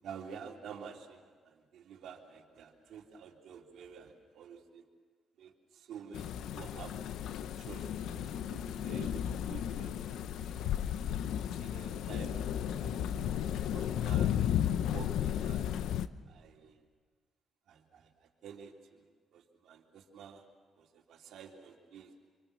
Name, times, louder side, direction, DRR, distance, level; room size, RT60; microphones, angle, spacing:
voice 1, 0.0-4.8 5.4-6.9 7.6-10.2 10.6-10.7 11.6-12.4 12.8-13.2 13.5-14.6 14.9-15.7 16.3-16.8 17.7-20.4 20.7-22.1, right 7 dB, 75° right, 0 dB, 3.3 m, -50 dB
sound 1, 6.1-16.1, left 10 dB, 80° left, 0.7 m, -34 dB
27.0 x 24.5 x 7.0 m, 1.5 s
cardioid pair, 90°, 0 cm